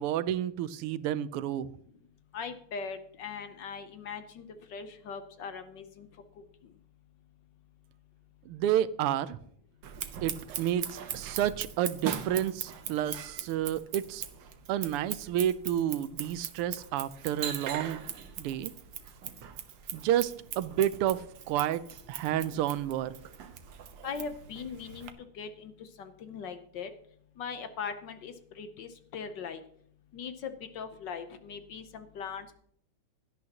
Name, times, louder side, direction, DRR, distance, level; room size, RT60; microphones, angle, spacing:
voice 1, 0.0-1.7 8.5-9.4 10.2-14.2 14.7-18.0 18.4-18.7 19.9-21.8 22.1-23.1, right 11 dB, 90° right, 16 dB, 1.6 m, -30 dB
voice 2, 2.3-6.1 24.0-26.9 27.4-29.6 30.1-32.5, left 6 dB, 65° left, 9 dB, 1.3 m, -40 dB
Scissors, 9.8-25.1, right 9 dB, 65° right, 1.5 m, -41 dB
17.0 x 11.5 x 2.9 m, 0.66 s
omnidirectional pair, 2.4 m